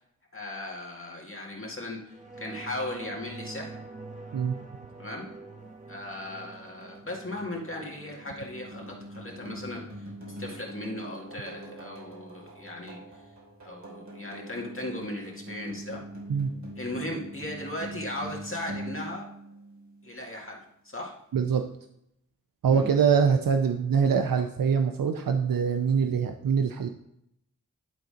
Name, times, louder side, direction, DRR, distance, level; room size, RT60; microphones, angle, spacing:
voice 1, 0.3-3.8 5.0-5.3 5.9-13.2 13.6-16.0 16.8-19.3 20.0-21.2 22.7-22.9, left 1 dB, 40° left, -2 dB, 2.1 m, -37 dB
sound 1, 2.0-11.0 11.4-11.5, right 3 dB, 20° right, 1.5 m, -46 dB
sound 2, 6.1-20.3, right 1 dB, 55° right, 3.1 m, -43 dB
voice 2, 21.3-21.7 22.6-26.9, right 6 dB, 90° right, 6 dB, 0.5 m, -24 dB
11.0 x 3.9 x 5.0 m, 0.78 s
wide cardioid pair, 50°, 33 cm